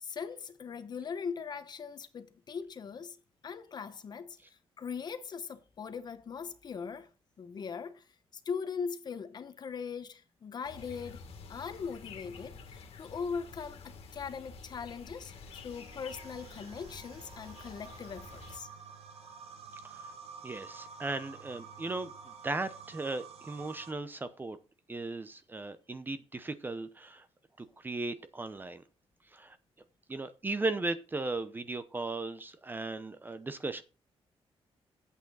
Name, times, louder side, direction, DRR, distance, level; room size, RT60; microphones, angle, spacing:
voice 1, 0.0-3.2 3.4-4.4 4.8-7.1 7.4-8.0 8.5-11.2 11.5-13.8 14.1-18.7, left 6 dB, 45° left, 1.0 m, -40 dB
sound 1, 10.6-18.6, left 5 dB, 70° left, 2.0 m, -49 dB
sound 2, 15.5-23.9, right 5 dB, 75° right, 1.4 m, -50 dB
voice 2, 20.4-22.1 22.4-24.6 24.9-27.3 27.6-28.8 29.3-29.6 30.1-33.8, right 2 dB, 20° right, 0.7 m, -36 dB
8.9 x 8.3 x 4.0 m
wide cardioid pair, 145°, 10 cm